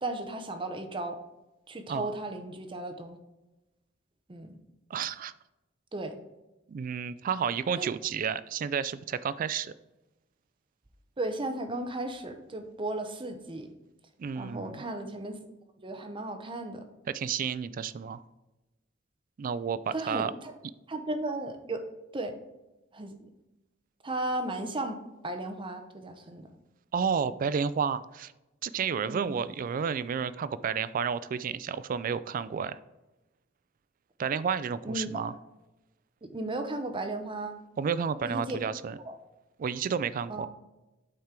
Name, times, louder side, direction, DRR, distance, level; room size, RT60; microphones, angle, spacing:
voice 1, 0.0-1.2 1.7-3.2 4.3-4.6 5.9-6.2 7.8-7.9 11.2-13.7 14.4-15.4 15.8-16.8 19.9-20.5 20.9-21.8 22.1-22.4 22.9-23.3 24.0-25.0 25.2-26.5 29.1-29.4 34.8-35.1 36.2-37.5 38.2-38.7 39.0-39.2 40.3-40.5, right 2 dB, 25° right, 7 dB, 0.7 m, -35 dB
voice 2, 4.9-5.3 6.7-9.7 14.2-14.8 17.1-18.2 19.4-20.3 26.9-28.3 28.6-32.8 34.2-35.3 37.8-39.0 39.6-40.5, right 6 dB, 45° right, 15 dB, 0.3 m, -31 dB
8.8 x 4.4 x 3.7 m, 1.0 s
head